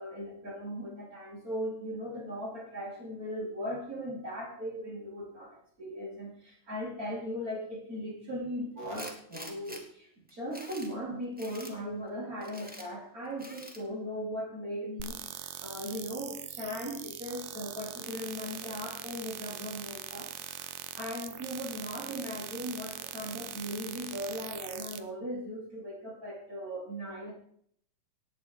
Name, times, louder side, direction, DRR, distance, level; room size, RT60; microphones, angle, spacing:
voice 1, 0.0-27.3, equal, 25° right, -2 dB, 4.5 m, -38 dB
Tools, 8.9-9.8 10.3-10.9 11.4-11.7 12.4-12.9 13.4-13.8, equal, 5° right, 0.8 m, -46 dB
sound 1, 15.0-25.0, right 12 dB, 75° right, 1.7 m, -42 dB
18.0 x 8.4 x 5.0 m, 0.63 s
omnidirectional pair, 3.7 m